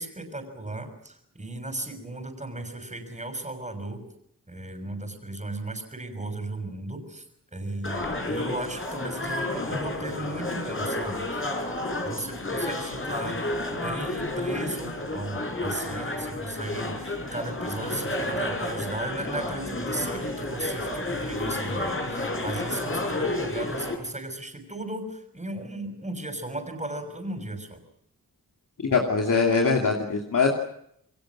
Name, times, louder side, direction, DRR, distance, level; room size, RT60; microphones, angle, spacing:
voice 1, 0.0-4.1 4.5-7.2 7.5-27.8, right 2 dB, 20° right, 6 dB, 6.3 m, -36 dB
sound 1, 7.8-23.9, left 2 dB, 35° left, 4.9 m, -31 dB
voice 2, 28.8-30.5, left 4 dB, 60° left, 0 dB, 2.9 m, -22 dB
29.0 x 22.0 x 6.2 m, 0.72 s
wide cardioid pair, 85°, 35 cm